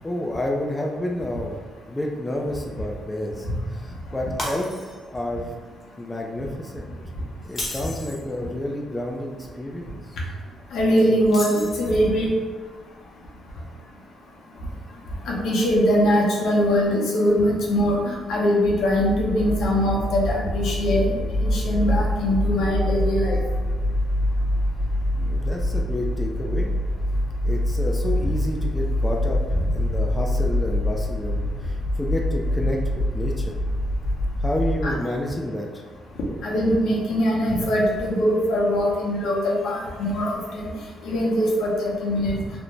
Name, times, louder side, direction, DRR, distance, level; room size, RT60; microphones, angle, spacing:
voice 1, 0.0-1.6 1.9-5.5 6.0-6.9 7.4-10.2 25.2-26.7 27.4-33.6 34.4-35.8, left 1 dB, 15° left, 0 dB, 0.3 m, -30 dB
Shatter, 4.4-5.2 5.6-5.8 7.4-8.3 11.3-12.1, left 1 dB, 35° left, 0.8 m, -33 dB
voice 2, 10.7-12.3 15.3-21.1 21.4-23.4 34.8-34.9 36.4-40.7 41.0-42.4, equal, 75° left, -3 dB, 0.7 m, -22 dB
sound 1, 18.6-35.0, left 1 dB, 50° right, 0.5 m, -25 dB
2.5 x 2.1 x 3.0 m, 1.5 s
cardioid pair, 90°, 0 cm